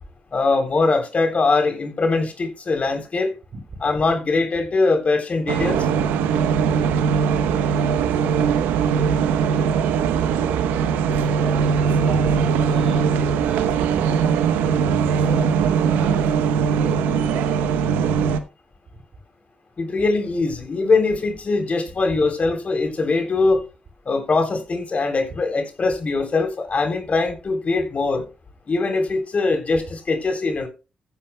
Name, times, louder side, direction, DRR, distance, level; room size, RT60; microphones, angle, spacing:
voice 1, 0.3-3.3 3.8-5.9 19.8-23.6 24.0-28.3 28.7-30.7, left 3 dB, 50° left, 3.4 m, -22 dB
sound 1, 5.5-18.4, right 7 dB, 90° right, 0.8 m, -20 dB
voice 2, 7.4-7.8 9.8-10.8 11.1-14.7 15.1-17.7, right 3 dB, 60° right, 5.9 m, -37 dB
15.5 x 10.0 x 2.2 m
supercardioid pair, 50°, 3 cm